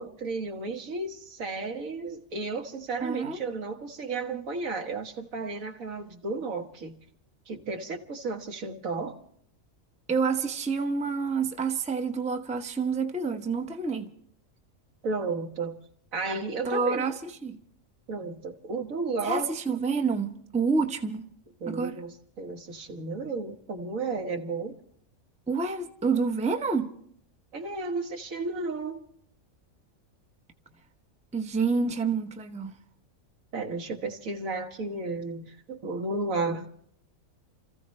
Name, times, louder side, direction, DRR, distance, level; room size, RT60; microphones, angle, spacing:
voice 1, 0.0-6.9 7.5-9.2 15.0-15.7 16.1-17.1 18.1-19.5 21.6-24.8 27.5-29.0 33.5-36.7, right 3 dB, 75° right, 1.8 m, -33 dB
voice 2, 3.0-3.4 10.1-14.1 16.6-17.6 19.2-21.2 21.7-22.0 25.5-26.9 31.3-32.7, right 4 dB, 5° right, 0.6 m, -28 dB
29.5 x 14.5 x 3.2 m
omnidirectional pair, 1.4 m